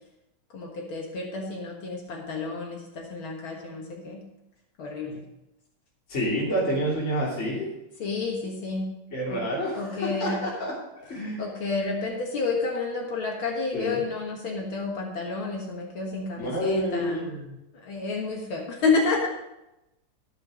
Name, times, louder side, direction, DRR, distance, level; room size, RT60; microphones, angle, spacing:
voice 1, 0.5-4.2 4.8-5.2 8.0-8.9 9.3-9.4 9.8-10.4 11.4-17.3 17.7-19.3, left 3 dB, 70° left, -1 dB, 2.3 m, -30 dB
voice 2, 6.1-7.7 9.1-11.4 13.7-14.0 16.4-17.5, equal, 30° left, -6 dB, 3.3 m, -29 dB
15.0 x 5.4 x 6.3 m, 0.92 s
omnidirectional pair, 2.4 m